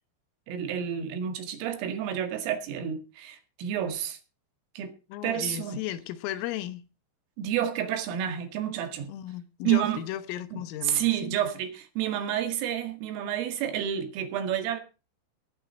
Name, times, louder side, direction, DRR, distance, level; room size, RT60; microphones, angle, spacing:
voice 1, 0.5-4.2 4.8-4.9 5.2-5.8 7.4-9.1 9.6-10.0 10.5-14.8, right 10 dB, 85° right, 4.5 m, -30 dB
voice 2, 5.1-6.9 9.1-11.3, left 13 dB, 90° left, 3.7 m, -35 dB
19.5 x 8.9 x 4.3 m
omnidirectional pair, 5.7 m